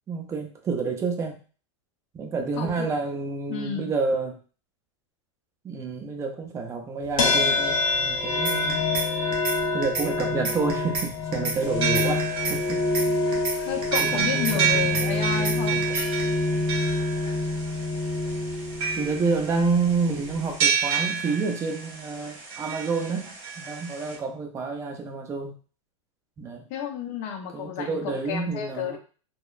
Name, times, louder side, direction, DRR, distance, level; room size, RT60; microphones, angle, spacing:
voice 1, 0.1-1.4 2.1-4.4 5.6-8.8 9.7-12.8 14.0-16.0 18.9-25.6 26.4-26.7 27.5-29.0, right 4 dB, 15° right, 4 dB, 0.4 m, -29 dB
voice 2, 2.6-2.9 3.5-3.9 13.6-15.8 26.7-29.0, left 8 dB, 40° left, 3 dB, 0.5 m, -31 dB
sound 1, 7.2-20.7, left 3 dB, 80° left, 0.7 m, -27 dB
sound 2, 8.4-9.1 9.3-9.6 9.8-11.1 11.3-11.6 11.8-13.1 13.3-13.6 13.8-15.1 15.3-15.6 15.8-16.2, right 4 dB, 35° right, 0.8 m, -29 dB
sound 3, 11.6-24.2, right 7 dB, 60° right, 1.4 m, -30 dB
2.8 x 2.0 x 2.3 m, 0.38 s
hypercardioid pair, 130°, 17 cm